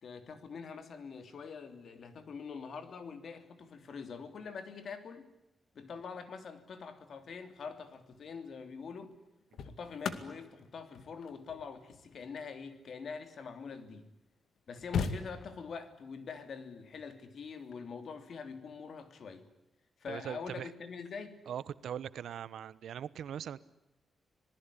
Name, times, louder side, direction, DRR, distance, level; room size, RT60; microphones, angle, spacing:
voice 1, 0.0-5.3 5.7-9.1 9.6-14.1 14.7-19.5 20.0-21.4, left 5 dB, 60° left, 9 dB, 3.1 m, -44 dB
sound 1, 7.9-8.2 9.1-13.7 14.3-14.4 14.6-15.8 17.5-17.7, left 6 dB, 80° left, 2.2 m, -40 dB
voice 2, 20.1-20.7 21.5-23.6, right 9 dB, 85° right, 17 dB, 1.0 m, -40 dB
27.0 x 19.5 x 9.9 m, 0.94 s
wide cardioid pair, 140°, 0 cm